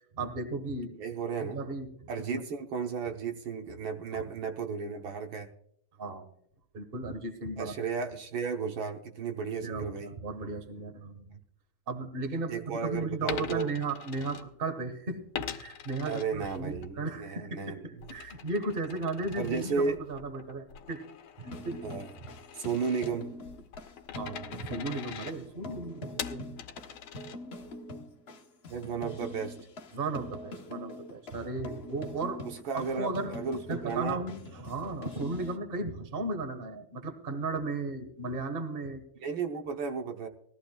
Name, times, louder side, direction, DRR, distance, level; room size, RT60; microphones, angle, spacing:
voice 1, 0.1-1.0 1.5-2.4 4.1-4.3 6.0-6.3 6.7-7.7 9.6-11.4 11.9-21.0 21.4-21.9 24.1-26.6 29.9-32.4 32.7-33.3 33.7-39.0, right 3 dB, 30° right, 8 dB, 1.4 m, -35 dB
voice 2, 1.0-1.6 2.1-5.5 7.6-10.1 12.5-13.7 16.1-18.1 19.4-20.0 21.8-22.1 22.5-23.3 28.7-29.6 31.7-31.8 32.4-34.2 39.2-40.3, right 5 dB, 70° right, 4 dB, 1.8 m, -34 dB
Coin (dropping), 13.2-14.9 15.3-16.9 17.3-27.8, left 9 dB, 75° left, 1.6 m, -43 dB
sound 1, 21.4-35.6, left 1 dB, 45° left, 0.8 m, -44 dB
19.5 x 14.0 x 2.3 m, 0.69 s
omnidirectional pair, 2.3 m